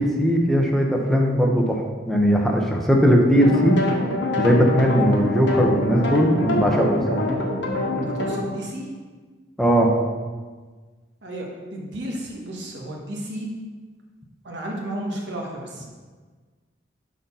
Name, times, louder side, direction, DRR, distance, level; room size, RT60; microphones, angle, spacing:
voice 1, 0.0-1.8 2.1-3.8 4.4-7.2 9.6-9.9, equal, ahead, -1 dB, 0.7 m, -19 dB
sound 1, 3.4-8.4, left 1 dB, 70° left, 1.1 m, -25 dB
voice 2, 7.9-8.9 11.2-13.5 14.4-15.8, right 1 dB, 70° right, -1 dB, 1.3 m, -33 dB
6.5 x 4.0 x 5.5 m, 1.4 s
head